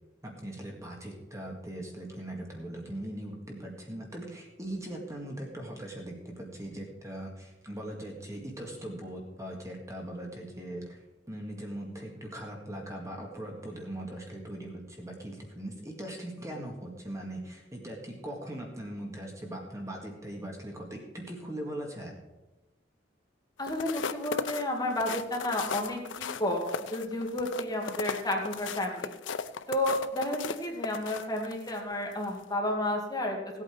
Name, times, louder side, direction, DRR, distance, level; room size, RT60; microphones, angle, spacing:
voice 1, 0.2-11.0 11.3-22.1, right 1 dB, 15° right, 0 dB, 1.9 m, -40 dB
sound 1, 23.6-31.8 32.2-32.4, left 6 dB, 85° left, 0.6 m, -37 dB
voice 2, 23.6-26.6 26.9-29.1 29.7-33.4, left 1 dB, 20° left, 0 dB, 2.1 m, -31 dB
16.5 x 8.5 x 4.5 m, 1.0 s
head